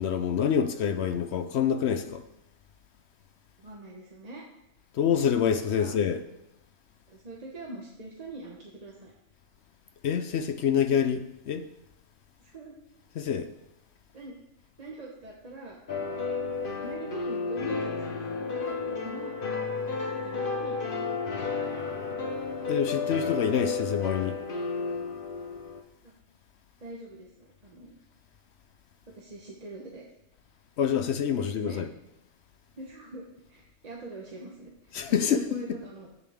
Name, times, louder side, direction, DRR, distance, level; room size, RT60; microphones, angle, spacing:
voice 1, 0.0-2.2 4.9-6.2 10.0-11.7 13.2-13.5 22.7-24.4 30.8-31.9 34.9-35.6, left 8 dB, 65° left, 0.8 m, -26 dB
voice 2, 3.6-4.4 5.7-6.0 7.1-9.1 12.4-12.8 14.1-16.3 16.8-19.4 19.8-21.5 26.0-26.1 26.8-28.0 29.1-30.0 31.3-31.8 32.8-36.1, right 2 dB, 35° right, 1.0 m, -44 dB
sound 1, 15.9-25.8, left 4 dB, 45° left, 1.1 m, -32 dB
10.5 x 8.4 x 3.5 m
omnidirectional pair, 1.4 m